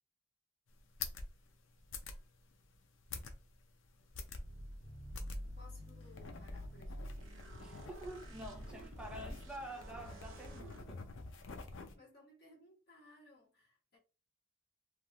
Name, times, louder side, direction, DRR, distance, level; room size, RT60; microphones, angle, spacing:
sound 1, 0.7-11.9, left 4 dB, 80° left, 0.5 m, -48 dB
sound 2, 4.4-10.8, equal, 80° right, 0.8 m, -49 dB
voice 1, 5.6-7.2 11.9-14.0, left 2 dB, 55° left, 1.5 m, -61 dB
voice 2, 7.6-11.0, right 1 dB, 5° right, 0.7 m, -48 dB
3.3 x 2.5 x 2.3 m
head